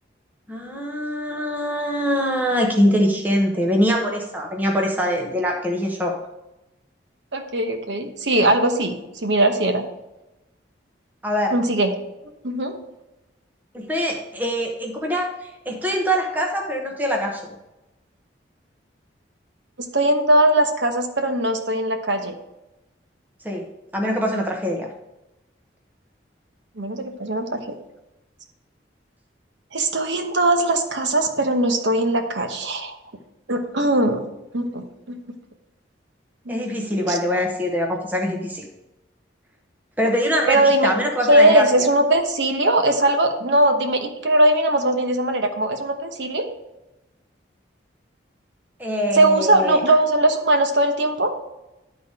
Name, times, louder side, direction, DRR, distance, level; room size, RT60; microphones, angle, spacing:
voice 1, 0.5-6.1 11.2-11.6 13.7-17.5 23.4-23.7 23.9-24.9 36.5-38.7 40.0-41.9 48.8-49.8, equal, 10° right, 0 dB, 0.9 m, -23 dB
voice 2, 7.3-9.8 11.5-11.9 12.4-12.7 19.9-22.3 26.8-27.8 29.7-32.9 33.5-34.3 34.5-35.2 36.5-36.6 37.1-37.2 40.5-40.9 41.3-46.5 49.1-51.3, right 1 dB, 70° right, 6 dB, 1.1 m, -20 dB
11.5 x 4.0 x 4.8 m, 0.97 s
head